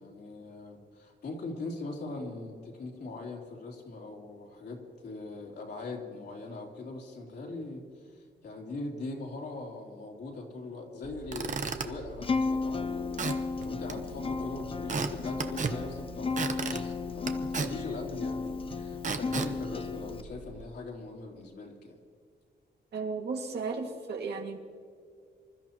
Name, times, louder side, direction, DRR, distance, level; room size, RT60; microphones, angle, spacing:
voice 1, 0.0-13.1 13.6-22.0, left 2 dB, 65° left, -1 dB, 3.4 m, -41 dB
Squeak / Wood, 11.0-20.6, right 4 dB, 45° right, 1.0 m, -37 dB
Acoustic guitar, 12.2-20.2, left 4 dB, 30° left, 0.5 m, -34 dB
voice 2, 22.9-24.6, right 4 dB, 65° right, 2 dB, 2.1 m, -34 dB
26.5 x 13.5 x 3.0 m, 2.3 s
wide cardioid pair, 145°, 18 cm